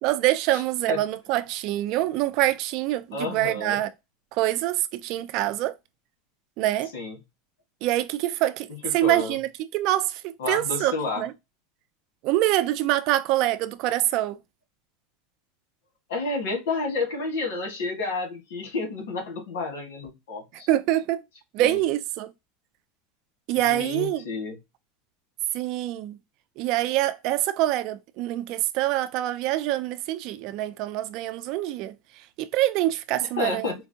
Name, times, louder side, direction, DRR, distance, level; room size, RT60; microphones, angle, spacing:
voice 1, 0.0-3.9 4.3-5.7 6.6-6.9 7.8-11.3 12.2-14.4 20.7-21.2 21.5-22.3 23.5-24.3 25.5-26.2 26.6-32.0 32.4-33.7, right 14 dB, 50° right, 0.4 m, -25 dB
voice 2, 3.1-3.8 6.9-7.1 8.8-9.3 10.4-11.2 16.1-20.7 21.6-21.8 23.6-24.6 33.4-33.7, left 3 dB, 90° left, 1.5 m, -30 dB
4.5 x 2.2 x 2.7 m
supercardioid pair, 145°, 0 cm